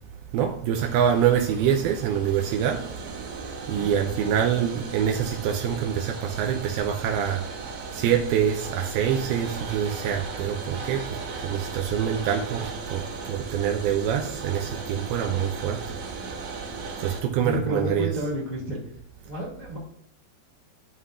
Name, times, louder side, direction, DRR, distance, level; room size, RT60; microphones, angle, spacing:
voice 1, 0.3-2.8 3.7-7.4 7.9-11.0 11.4-15.9 17.0-18.1, right 9 dB, 85° right, 4 dB, 2.3 m, -25 dB
sound 1, 0.7-17.2, right 4 dB, 65° right, 3.0 m, -37 dB
voice 2, 17.4-18.9 19.2-19.8, equal, 80° left, -4 dB, 0.3 m, -31 dB
11.0 x 5.6 x 2.4 m, 0.74 s
omnidirectional pair, 5.0 m